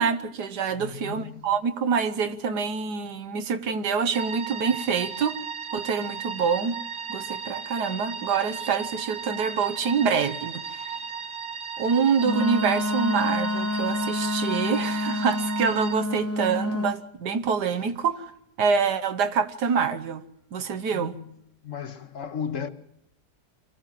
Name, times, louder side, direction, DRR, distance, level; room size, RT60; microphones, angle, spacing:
voice 1, 0.0-5.4 5.7-6.8 7.1-10.9 11.8-18.2 18.6-20.2 20.5-21.2, right 6 dB, 80° right, 1.6 m, -26 dB
voice 2, 0.7-1.5 20.9-21.4 21.6-22.7, left 7 dB, 55° left, 1.3 m, -35 dB
sound 1, 4.1-15.9, right 6 dB, 55° right, 1.1 m, -35 dB
Wind instrument woodwind instrument, 12.2-17.0, left 2 dB, 10° left, 0.7 m, -28 dB
24.0 x 14.5 x 7.5 m
omnidirectional pair, 1.7 m